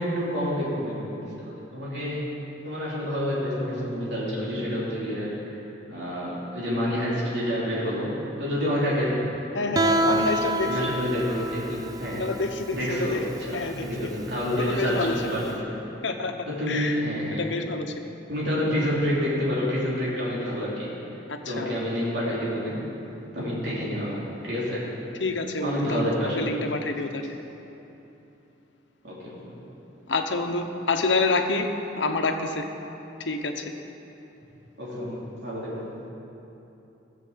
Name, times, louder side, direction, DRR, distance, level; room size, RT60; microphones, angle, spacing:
voice 1, 0.0-2.3 2.6-5.6 5.9-9.4 9.8-10.2 10.6-12.2 12.7-13.2 13.5-15.7 16.5-17.4 18.3-20.9 21.5-22.8 23.3-24.9 25.6-26.5 29.0-29.6 34.8-35.9, equal, 65° right, -7 dB, 3.3 m, -28 dB
voice 2, 9.5-11.0 12.2-13.2 13.5-13.8 14.5-15.2 16.0-16.4 16.7-17.0 17.4-18.1 21.3-21.8 25.2-27.4 30.1-31.7 32.0-32.7 33.2-33.7, left 3 dB, 90° left, 5 dB, 1.0 m, -28 dB
Guitar, 9.8-15.5, right 2 dB, 20° right, 0.4 m, -28 dB
15.5 x 7.5 x 7.5 m, 2.9 s
head